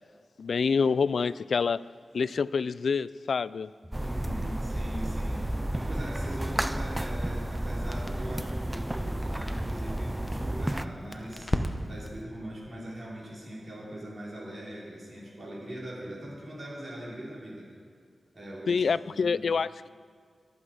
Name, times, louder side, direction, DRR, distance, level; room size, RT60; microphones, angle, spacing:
voice 1, 0.4-1.8 2.1-3.7 18.7-19.9, left 5 dB, 65° left, 18 dB, 0.3 m, -27 dB
sound 1, 3.9-10.9, right 1 dB, 10° right, 0.4 m, -32 dB
voice 2, 4.0-11.5 11.9-17.7 18.3-19.4, right 1 dB, 35° right, -6 dB, 4.8 m, -41 dB
Crackle, 6.9-12.2, equal, 10° left, 1.0 m, -38 dB
23.5 x 8.4 x 5.0 m, 2.1 s
wide cardioid pair, 155°, 0 cm